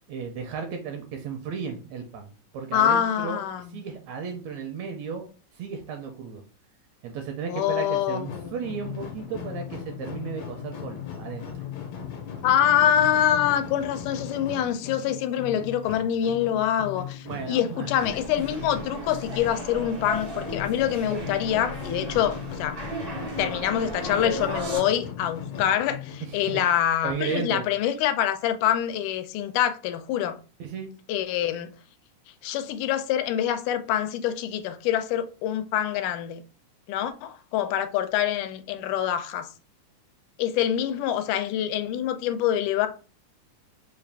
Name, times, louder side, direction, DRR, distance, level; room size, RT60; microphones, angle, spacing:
voice 1, 0.1-3.4 3.7-5.3 5.5-6.4 7.0-11.6 17.3-18.1 26.2-26.7 27.0-27.7 30.6-30.9, right 6 dB, 80° right, 1.6 m, -34 dB
voice 2, 2.7-3.8 7.5-8.6 12.4-22.8 23.4-30.4 31.1-31.7 32.4-36.4 36.9-39.5 40.4-42.9, left 10 dB, 90° left, 2.1 m, -25 dB
sound 1, 8.2-26.6, left 8 dB, 70° left, 1.8 m, -38 dB
sound 2, 18.0-24.8, right 2 dB, 55° right, 0.6 m, -36 dB
4.9 x 2.4 x 3.4 m
omnidirectional pair, 3.5 m